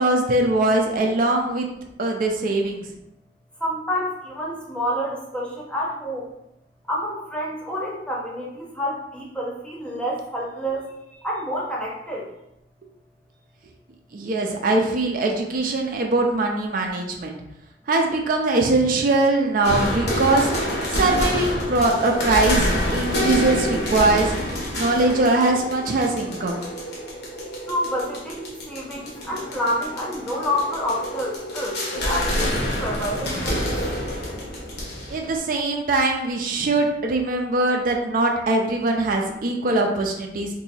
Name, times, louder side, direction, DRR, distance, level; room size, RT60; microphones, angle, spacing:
voice 1, 0.0-1.7 2.0-2.8 14.1-17.4 17.9-20.5 20.9-24.3 24.8-26.6 35.1-40.5, right 2 dB, 50° right, 2 dB, 0.4 m, -21 dB
voice 2, 3.6-6.3 6.9-10.8 11.2-12.3 27.7-32.5 32.8-33.7, equal, 5° left, -3 dB, 0.7 m, -28 dB
sound 1, 19.6-35.4, equal, 65° left, 1.0 m, -27 dB
2.8 x 2.7 x 4.1 m, 0.85 s
head